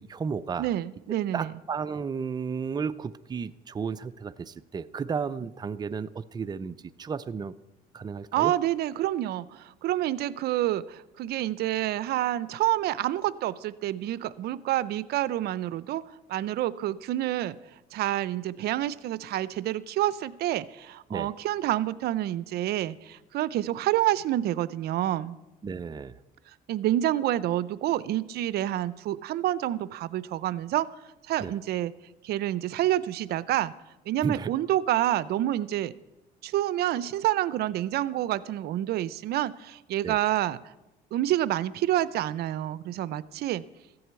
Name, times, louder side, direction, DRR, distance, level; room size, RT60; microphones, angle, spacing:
voice 1, 0.0-0.7 1.3-7.5 7.9-8.5 21.1-21.3 25.6-26.1 31.4-31.5 34.2-34.5 40.0-40.2, right 6 dB, 25° right, 11 dB, 0.5 m, -33 dB
voice 2, 0.6-1.5 8.3-16.0 16.3-17.6 17.9-25.4 26.7-30.9 31.3-31.9 32.2-33.7 34.1-35.9 36.4-40.6 41.1-43.6, right 13 dB, 70° right, 17 dB, 0.5 m, -28 dB
14.5 x 7.8 x 8.2 m, 0.96 s
cardioid pair, 110°, 17 cm